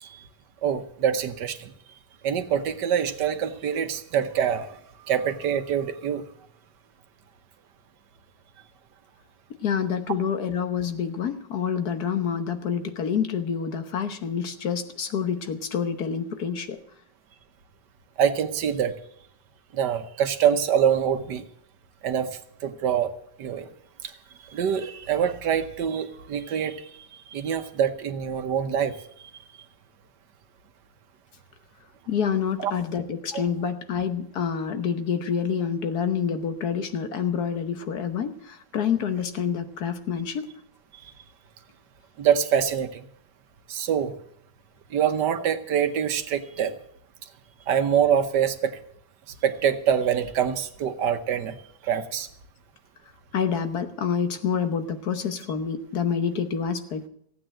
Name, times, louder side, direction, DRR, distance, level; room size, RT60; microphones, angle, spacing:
voice 1, 0.6-1.7 2.2-4.8 5.1-6.2 18.2-18.9 19.7-21.4 22.0-23.1 23.4-23.7 24.5-26.9 27.3-29.0 32.6-32.7 42.2-43.1 43.7-44.1 44.9-46.8 47.7-48.8 49.4-51.5 51.8-52.3, right 8 dB, 75° right, 9 dB, 1.6 m, -25 dB
voice 2, 9.6-16.8 32.1-40.5 53.3-57.1, left 7 dB, 65° left, 8 dB, 1.6 m, -27 dB
15.5 x 9.0 x 7.6 m, 0.69 s
omnidirectional pair, 1.9 m